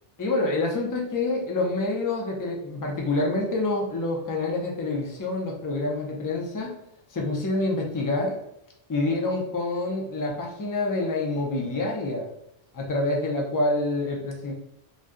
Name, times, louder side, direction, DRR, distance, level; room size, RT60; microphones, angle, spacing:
voice 1, 0.2-6.8 7.1-8.4 8.9-12.3 12.7-14.5, left 2 dB, 30° left, -1 dB, 0.4 m, -27 dB
2.6 x 2.2 x 3.5 m, 0.79 s
omnidirectional pair, 1.1 m